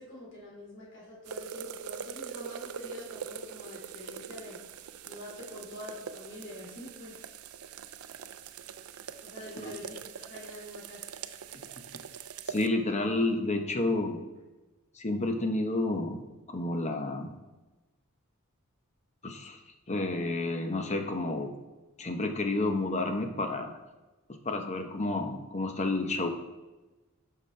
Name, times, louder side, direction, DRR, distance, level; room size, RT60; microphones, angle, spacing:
voice 1, 0.0-4.6 5.0-7.3 9.2-11.1, left 1 dB, 60° left, -5 dB, 2.6 m, -45 dB
sound 1, 1.2-12.7, right 7 dB, 90° right, 0.4 m, -43 dB
voice 2, 12.5-14.2 14.9-17.4 19.2-19.6 19.9-21.5 22.0-23.8 24.4-26.3, left 2 dB, 30° left, 5 dB, 0.8 m, -30 dB
12.0 x 5.8 x 3.3 m, 1.1 s
head